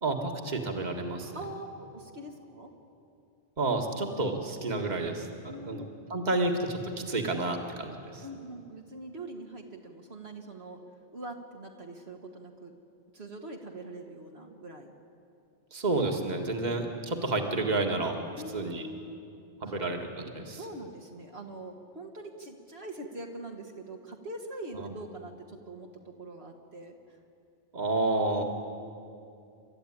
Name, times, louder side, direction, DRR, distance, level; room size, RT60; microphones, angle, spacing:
voice 1, 0.0-1.3 3.6-5.3 5.7-5.8 6.1-6.8 7.1-8.2 15.7-18.2 18.5-18.9 19.6-20.6 24.8-25.0 27.7-28.4, right 2 dB, 35° right, 3 dB, 1.9 m, -30 dB
voice 2, 1.3-2.7 5.5-5.9 8.2-10.8 11.1-12.7 13.1-14.9 18.4-19.3 19.6-19.8 20.5-27.2, right 2 dB, 60° right, 1 dB, 1.8 m, -43 dB
28.5 x 13.0 x 9.9 m, 2.6 s
omnidirectional pair, 1.2 m